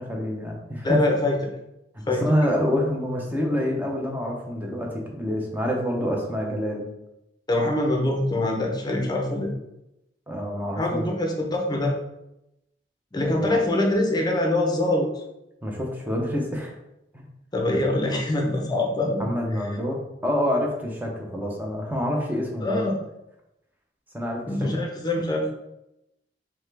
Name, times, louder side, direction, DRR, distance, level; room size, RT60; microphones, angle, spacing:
voice 1, 0.0-1.0 2.1-6.8 10.3-11.0 13.2-13.5 15.6-16.7 17.1-17.3 19.2-22.9 24.1-24.7, equal, 10° right, 0 dB, 0.7 m, -27 dB
voice 2, 0.8-1.4 2.1-2.2 7.5-9.5 10.8-12.0 13.1-15.2 17.5-19.3 22.6-23.0 24.5-25.5, left 2 dB, 25° left, 1 dB, 0.7 m, -24 dB
3.6 x 3.2 x 3.3 m, 0.88 s
head